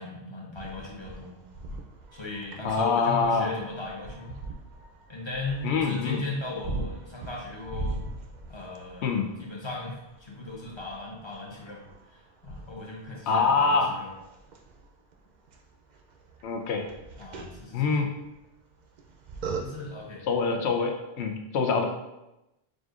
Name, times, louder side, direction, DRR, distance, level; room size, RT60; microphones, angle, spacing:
voice 1, 0.0-1.3 2.1-4.4 5.1-8.0 8.5-11.8 12.1-14.1 17.2-17.9 19.6-20.3 20.5-20.7, left 2 dB, 30° left, -2 dB, 0.6 m, -37 dB
sound 1, 0.6-20.0, right 2 dB, 55° right, 0.5 m, -42 dB
voice 2, 2.6-3.5 5.6-6.2 9.0-9.3 13.3-13.9 16.4-16.9 17.7-18.1 20.3-21.9, left 4 dB, 80° left, 4 dB, 0.9 m, -25 dB
6.3 x 2.5 x 2.4 m, 0.94 s
omnidirectional pair, 1.1 m